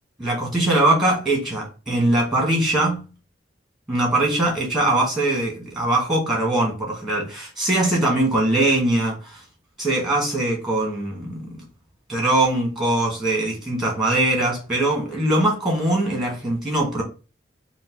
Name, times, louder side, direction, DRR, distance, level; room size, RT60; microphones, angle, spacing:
voice 1, 0.2-3.0 3.9-9.4 9.8-11.6 12.1-17.0, right 2 dB, ahead, 1.6 m, -21 dB
5.3 x 2.4 x 3.9 m
head